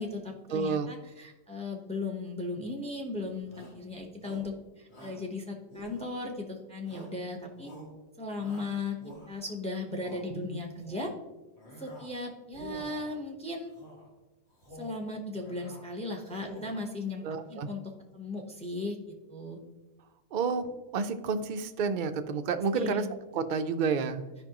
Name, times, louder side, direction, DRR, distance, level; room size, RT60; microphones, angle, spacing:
voice 1, 0.0-7.7 8.2-8.9 9.3-11.1 11.8-13.7 14.8-17.8 18.1-19.6 22.7-23.1, left 2 dB, 5° left, 2 dB, 0.9 m, -37 dB
voice 2, 0.5-0.9 10.3-10.5 17.2-17.7 20.3-23.0 23.3-24.2, right 5 dB, 55° right, 8 dB, 0.6 m, -30 dB
Shout, 3.5-3.8 4.2-4.6 4.9-5.3 5.7-6.4 6.8-7.2 7.6-7.9 8.4-9.5 9.9-10.3 10.7-11.2 11.6-12.2 12.5-13.2 13.7-14.1 14.5-15.0 15.3-15.9 16.2-16.9, equal, 55° left, 2.3 m, -48 dB
12.5 x 5.2 x 3.0 m, 1.1 s
omnidirectional pair, 1.4 m